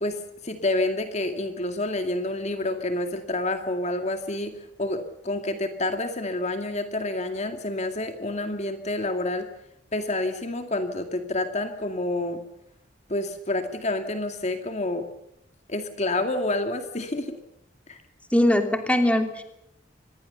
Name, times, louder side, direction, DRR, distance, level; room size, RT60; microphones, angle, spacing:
voice 1, 0.0-9.5 9.9-12.4 13.1-15.1 15.7-17.4 17.9-18.0, left 2 dB, 35° left, 6 dB, 2.2 m, -28 dB
voice 2, 18.3-19.4, left 1 dB, 5° left, 5 dB, 2.8 m, -21 dB
26.0 x 21.0 x 6.9 m, 0.82 s
head